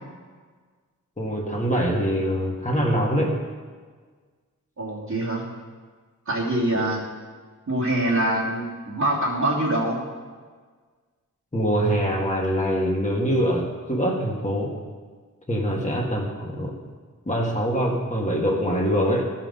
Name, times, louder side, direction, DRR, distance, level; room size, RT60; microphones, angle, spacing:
voice 1, 1.2-3.4 11.5-14.7 15.5-16.8 17.3-19.3, equal, 20° left, -2 dB, 1.9 m, -24 dB
voice 2, 4.8-5.5 6.3-7.0 7.7-10.0, right 1 dB, 55° right, -6 dB, 3.2 m, -24 dB
13.0 x 5.9 x 5.5 m, 1.5 s
cardioid pair, 45°, 33 cm